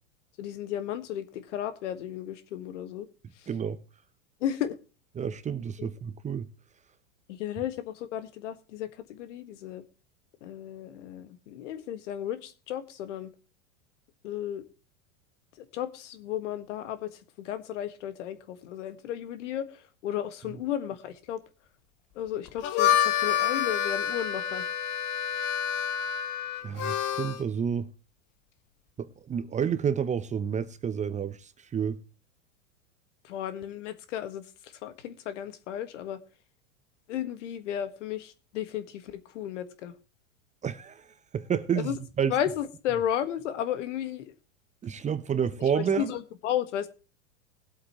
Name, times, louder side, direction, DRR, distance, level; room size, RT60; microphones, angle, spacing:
voice 1, 0.4-3.1 3.3-3.5 4.4-4.7 5.8-5.9 7.3-9.8 10.4-13.3 14.2-14.7 15.6-21.4 22.1-24.6 33.2-36.2 37.1-39.9 41.7-42.0 42.3-44.3 45.7-46.9, left 10 dB, 70° left, 1.6 m, -34 dB
voice 2, 3.5-3.8 5.2-6.5 26.6-27.9 29.0-32.0 40.6-42.3 44.8-46.1, right 7 dB, 20° right, 0.8 m, -30 dB
Harmonica, 22.5-27.4, left 9 dB, 50° left, 1.4 m, -28 dB
20.5 x 8.1 x 2.9 m
hypercardioid pair, 105°, 38 cm